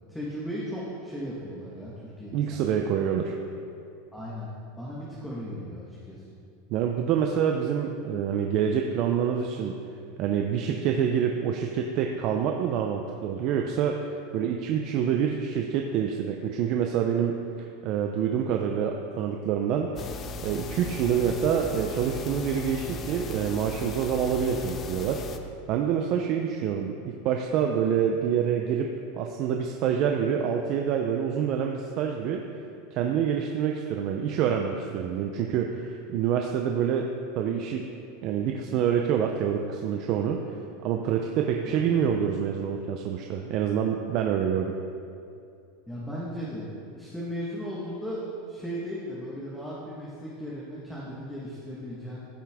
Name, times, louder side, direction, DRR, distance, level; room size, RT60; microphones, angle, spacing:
voice 1, 0.0-2.9 4.1-6.2 41.6-41.8 45.9-46.7 46.9-52.2, equal, 5° left, -7 dB, 1.4 m, -36 dB
voice 2, 2.3-3.3 6.7-9.8 10.2-14.0 14.3-19.9 20.4-25.2 25.7-32.4 32.9-37.1 37.4-37.9 38.2-40.4 40.8-44.8, right 8 dB, 45° right, 3 dB, 0.6 m, -27 dB
sound 1, 20.0-25.4, left 3 dB, 30° left, 0.5 m, -37 dB
14.5 x 5.8 x 3.6 m, 2.5 s
supercardioid pair, 140°, 0 cm